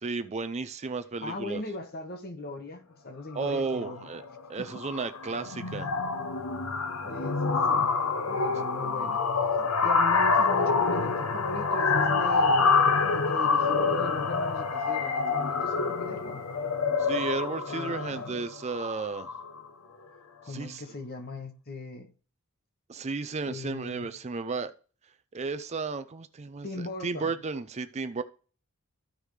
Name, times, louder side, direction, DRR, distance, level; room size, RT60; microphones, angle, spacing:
voice 1, 0.0-1.6 3.3-4.2 4.5-5.9 9.6-9.7 17.0-19.3 20.5-20.8 22.9-24.7 25.3-28.2, right 4 dB, 30° right, 0.4 m, -33 dB
voice 2, 1.2-4.1 7.0-7.9 8.3-9.2 9.8-12.7 13.1-16.5 17.7-18.4 20.4-22.1 23.5-24.1 26.6-27.3, left 2 dB, 45° left, 1.3 m, -39 dB
sound 1, 3.6-3.9 4.2-4.5 4.7-19.6, left 4 dB, 70° left, 0.7 m, -26 dB
14.0 x 5.0 x 3.2 m
head